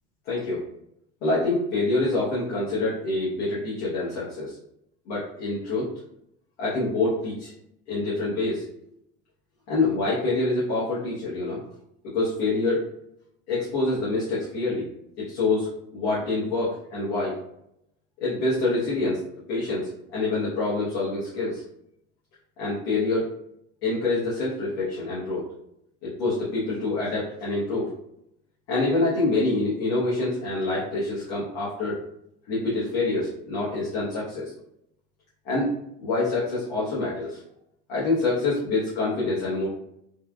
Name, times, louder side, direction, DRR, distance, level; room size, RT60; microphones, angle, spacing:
voice 1, 0.3-0.6 1.2-4.6 5.0-5.9 6.6-7.5 7.9-8.6 9.7-11.6 12.1-12.8 13.5-14.9 15.3-17.3 18.2-19.2 19.5-21.6 22.6-23.2 23.8-25.4 26.0-27.9 28.7-32.0 32.5-34.5 35.4-35.7 36.0-37.4 37.9-39.7, left 2 dB, 75° left, -8 dB, 1.0 m, -26 dB
3.2 x 2.3 x 2.2 m, 0.79 s
hypercardioid pair, 80°, 32 cm